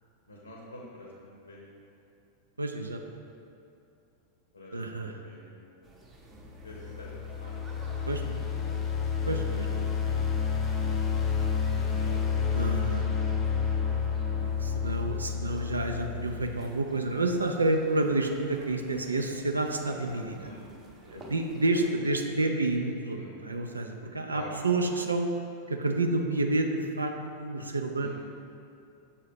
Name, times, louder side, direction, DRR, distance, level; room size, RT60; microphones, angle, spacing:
voice 1, 0.3-1.9 4.5-5.8 6.6-7.6 8.5-8.8 10.9-12.5 20.4-20.7 21.1-21.3 21.7-21.9 23.1-23.4 24.3-24.5 28.0-28.1, left 1 dB, 80° left, -4 dB, 0.8 m, -48 dB
voice 2, 2.6-3.0 4.7-5.2 8.1-8.2 9.3-10.3 12.5-13.1 14.4-20.5 21.0-25.3 25.7-27.1 27.4-28.1, right 2 dB, 80° right, 3 dB, 0.3 m, -29 dB
sound 1, 5.8-21.9, right 2 dB, 20° right, 0.7 m, -52 dB
sound 2, 6.4-16.6, left 6 dB, 25° left, 0.5 m, -30 dB
6.8 x 2.8 x 5.0 m, 2.6 s
figure-of-eight pair, 90°, 0 cm